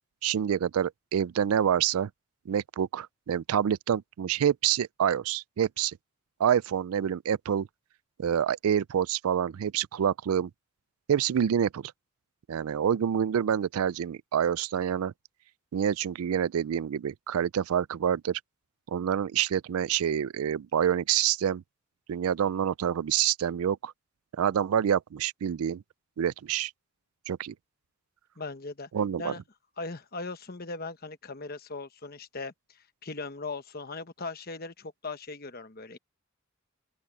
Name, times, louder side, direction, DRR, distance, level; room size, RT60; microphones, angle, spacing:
voice 1, 0.2-2.1 2.5-6.0 6.4-7.7 8.2-10.5 11.1-11.9 12.5-15.1 15.7-18.4 18.9-21.6 22.1-23.9 24.4-25.8 26.2-26.7 27.3-27.5 28.9-29.3, right 9 dB, 80° right, 0.4 m, -27 dB
voice 2, 28.4-28.9 29.2-29.4 29.8-32.5 33.0-36.0, left 3 dB, 45° left, 1.1 m, -38 dB
open air
head